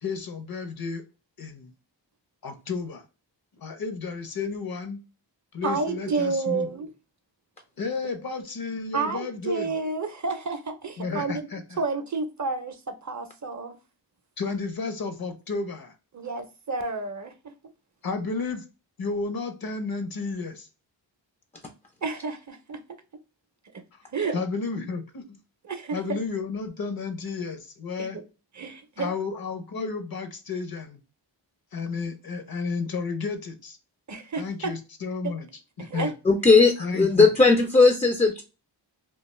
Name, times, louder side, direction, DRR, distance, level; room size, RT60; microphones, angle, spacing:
voice 1, 0.0-1.0 1.4-1.7 2.4-3.0 3.6-5.0 5.5-6.7 7.8-9.8 11.0-11.8 14.4-15.9 18.0-18.6 19.0-20.7 23.9-24.0 24.3-25.4 25.9-28.2 29.0-31.0 31.7-33.8 34.4-35.5 35.8-36.1 36.8-37.3, left 4 dB, 55° left, 0.7 m, -32 dB
voice 2, 5.6-6.9 8.9-11.5 11.8-13.8 16.1-17.3 22.0-22.8 24.1-24.4 25.6-26.2 28.0-28.2 28.6-29.1 34.1-34.7 35.8-36.1, right 4 dB, 40° right, 0.5 m, -30 dB
voice 3, 36.3-38.4, left 4 dB, 15° left, 0.3 m, -17 dB
2.4 x 2.3 x 3.0 m
wide cardioid pair, 80°, 44 cm